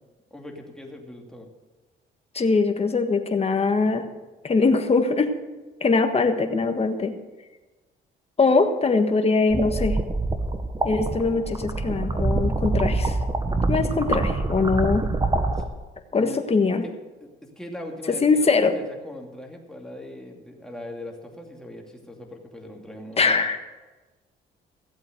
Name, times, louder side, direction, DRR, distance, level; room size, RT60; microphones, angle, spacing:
voice 1, 0.3-1.5 15.6-15.7 16.1-16.5 17.2-17.3 17.6-23.4, left 1 dB, 5° left, 0 dB, 2.7 m, -40 dB
voice 2, 2.3-4.0 4.4-5.3 5.8-7.1 8.4-10.0 10.8-13.2 13.7-15.0 16.1-16.8 18.2-18.8 23.2-23.6, left 4 dB, 30° left, 6 dB, 1.5 m, -22 dB
sound 1, 9.5-15.6, right 2 dB, 20° right, 1.3 m, -25 dB
15.5 x 8.1 x 6.7 m, 1.2 s
cardioid pair, 90°, 20 cm